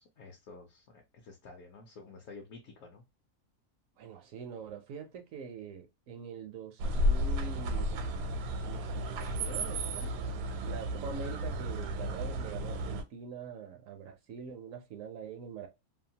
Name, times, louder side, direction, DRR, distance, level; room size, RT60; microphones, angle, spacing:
voice 1, 0.0-3.1, left 3 dB, 65° left, 0.9 m, -51 dB
voice 2, 4.0-8.3 8.6-10.1 10.6-15.7, right 6 dB, 70° right, 0.8 m, -44 dB
sound 1, 6.8-13.0, equal, 85° right, 1.1 m, -33 dB
2.8 x 2.2 x 2.6 m
omnidirectional pair, 1.7 m